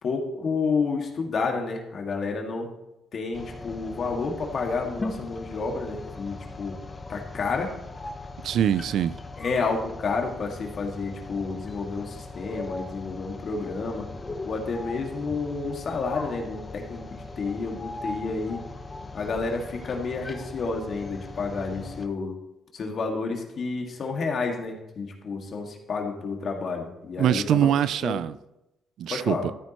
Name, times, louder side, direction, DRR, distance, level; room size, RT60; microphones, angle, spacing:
voice 1, 0.0-2.7 3.1-6.8 7.1-7.7 9.4-14.1 14.4-18.6 19.1-22.3 22.7-27.7 28.0-28.2 29.1-29.4, left 4 dB, 55° left, 2.0 m, -30 dB
sound 1, 3.3-22.1, left 2 dB, 25° left, 0.9 m, -39 dB
voice 2, 8.4-9.1 27.2-28.3 29.0-29.4, right 10 dB, 75° right, 0.4 m, -23 dB
13.5 x 9.2 x 3.0 m
cardioid pair, 90°, 0 cm